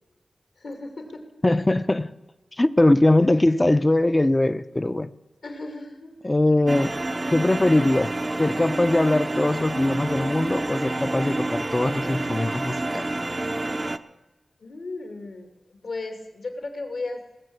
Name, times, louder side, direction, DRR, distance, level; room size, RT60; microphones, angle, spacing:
voice 1, 0.6-1.3 5.4-6.1 6.8-6.9 14.6-17.2, left 2 dB, 75° left, 2.7 m, -35 dB
voice 2, 1.4-2.1 2.6-5.1 6.2-6.9 7.3-8.1 8.4-13.0, left 1 dB, 20° left, 0.6 m, -21 dB
sound 1, 6.7-14.0, right 2 dB, 30° right, 0.6 m, -28 dB
19.0 x 7.2 x 7.9 m
wide cardioid pair, 80°, 0 cm